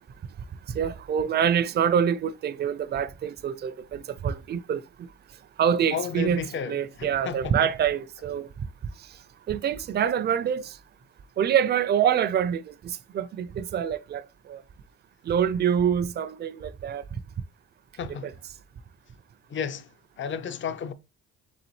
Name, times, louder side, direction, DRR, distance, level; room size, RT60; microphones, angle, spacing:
voice 1, 0.7-4.8 5.6-8.5 9.5-10.8 11.4-14.6 15.3-17.0 18.1-18.3, right 8 dB, 35° right, 0.4 m, -26 dB
voice 2, 5.9-7.5 18.0-18.3 19.5-19.9 20.2-20.9, left 7 dB, 40° left, 0.5 m, -33 dB
4.0 x 3.7 x 3.1 m
cardioid pair, 90°, 30 cm